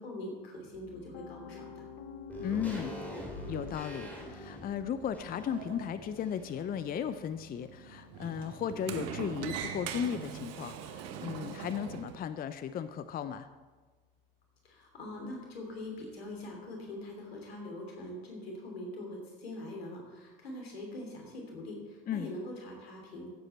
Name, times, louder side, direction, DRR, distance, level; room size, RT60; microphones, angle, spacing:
voice 1, 0.0-1.9 14.6-23.3, left 1 dB, 80° left, 1 dB, 3.1 m, -43 dB
Piano, 0.7-12.7, left 6 dB, 55° left, 0.9 m, -53 dB
sound 1, 2.3-6.8 7.1-7.2, equal, 5° left, 3.8 m, -44 dB
voice 2, 2.4-2.9 3.5-13.5 22.1-22.3, left 8 dB, 30° left, 12 dB, 0.6 m, -36 dB
Sliding door, 5.1-12.2, right 8 dB, 55° right, 1.2 m, -42 dB
15.5 x 7.9 x 4.4 m, 1.4 s
hypercardioid pair, 75°, 30 cm